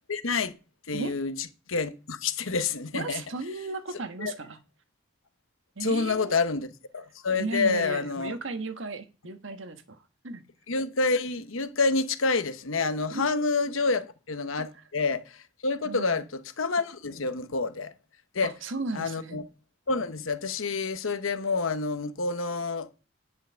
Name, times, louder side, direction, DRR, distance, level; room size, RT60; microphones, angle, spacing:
voice 1, 0.1-0.5 0.9-3.2 4.2-4.3 5.8-6.7 6.9-8.3 10.7-17.9 18.3-18.5 18.9-19.4 19.9-22.9, left 4 dB, 90° left, 1.1 m, -28 dB
voice 2, 2.9-4.6 5.7-6.4 7.4-10.4 13.1-13.3 15.8-16.3 18.4-19.4, right 3 dB, 75° right, 1.4 m, -35 dB
10.5 x 5.7 x 6.3 m
head